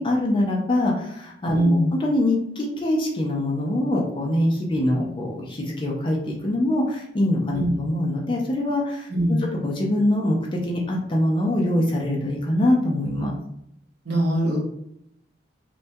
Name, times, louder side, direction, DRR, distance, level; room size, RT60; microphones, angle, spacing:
voice 1, 0.0-13.3, left 1 dB, 30° left, -1 dB, 0.3 m, -24 dB
voice 2, 1.5-1.9 7.5-7.7 9.1-9.4 14.0-14.6, right 1 dB, 90° right, -4 dB, 0.8 m, -21 dB
2.2 x 2.1 x 2.6 m, 0.76 s
head